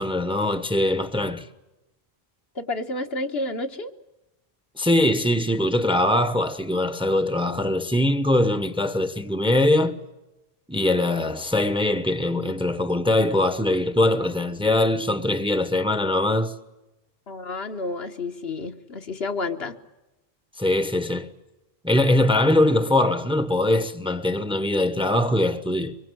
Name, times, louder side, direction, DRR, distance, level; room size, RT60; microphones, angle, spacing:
voice 1, 0.0-1.5 4.8-10.0 10.7-16.5 20.6-21.3 21.8-26.0, left 1 dB, 5° right, 1.0 m, -22 dB
voice 2, 2.6-3.9 17.3-19.8, left 2 dB, 70° left, 1.7 m, -30 dB
25.0 x 23.0 x 7.8 m
omnidirectional pair, 1.1 m